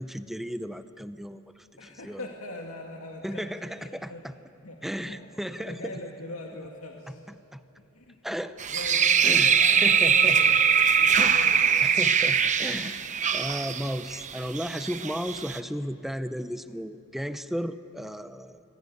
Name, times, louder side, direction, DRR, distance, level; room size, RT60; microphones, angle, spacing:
voice 1, 0.0-2.2 3.2-4.3 4.8-5.9 7.1-7.2 7.5-7.6 8.2-8.6 9.2-9.5 9.8-10.4 11.2-11.5 11.8-13.1 13.3-18.6, equal, ahead, 11 dB, 0.6 m, -34 dB
voice 2, 1.8-3.5 3.7-4.3 4.6-5.2 5.6-7.4 7.8-8.2 8.7-11.8, left 2 dB, 80° left, 0 dB, 2.1 m, -41 dB
sound 1, 8.6-15.6, right 7 dB, 35° right, 0.8 m, -22 dB
25.5 x 16.5 x 9.4 m, 2.8 s
head